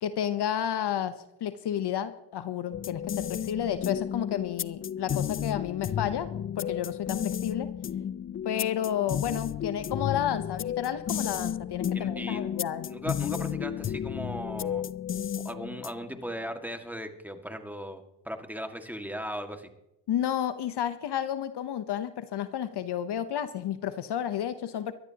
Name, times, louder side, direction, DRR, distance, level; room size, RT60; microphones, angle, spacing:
voice 1, 0.0-7.7 8.4-12.9 20.1-24.9, left 10 dB, 55° left, 12 dB, 0.9 m, -31 dB
sound 1, 2.7-16.2, left 9 dB, 30° left, 0.4 m, -33 dB
voice 2, 11.9-12.5 12.9-14.8 15.4-19.7, equal, 5° right, 5 dB, 1.9 m, -38 dB
23.5 x 12.0 x 2.9 m, 0.89 s
supercardioid pair, 70°, 47 cm